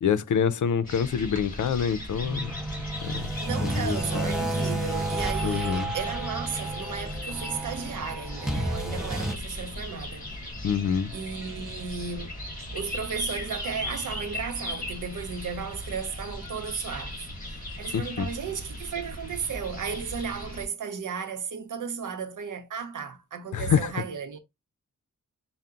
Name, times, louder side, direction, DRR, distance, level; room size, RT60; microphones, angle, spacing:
voice 1, 0.0-2.6 3.0-3.3 3.6-4.0 5.4-5.9 10.6-11.1 17.9-18.3 23.5-23.9, left 7 dB, 80° left, 0.5 m, -26 dB
sound 1, 0.8-20.6, left 1 dB, 25° left, 1.5 m, -38 dB
sound 2, 2.2-9.3, right 1 dB, ahead, 0.5 m, -31 dB
voice 2, 3.4-10.3 11.1-12.3 12.7-24.4, right 6 dB, 85° right, 0.7 m, -34 dB
5.5 x 2.1 x 3.7 m
wide cardioid pair, 145°, 30 cm